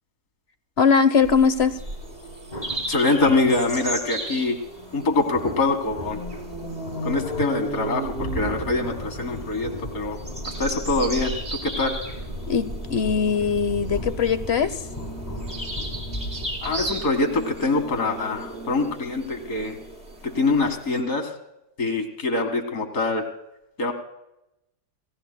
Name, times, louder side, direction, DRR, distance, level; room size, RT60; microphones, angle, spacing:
voice 1, 0.8-1.8 12.5-14.9, left 6 dB, 50° left, 12 dB, 1.0 m, -21 dB
sound 1, 1.2-21.0, right 1 dB, 45° right, 4.6 m, -35 dB
sound 2, 2.5-17.0, left 1 dB, 30° left, 1.8 m, -37 dB
voice 2, 2.9-4.6 4.9-6.2 7.0-10.2 10.6-12.0 16.6-19.8 20.2-21.3 21.8-23.3 23.8-23.9, left 3 dB, 70° left, 5 dB, 2.3 m, -24 dB
29.5 x 17.5 x 2.3 m, 0.89 s
omnidirectional pair, 1.6 m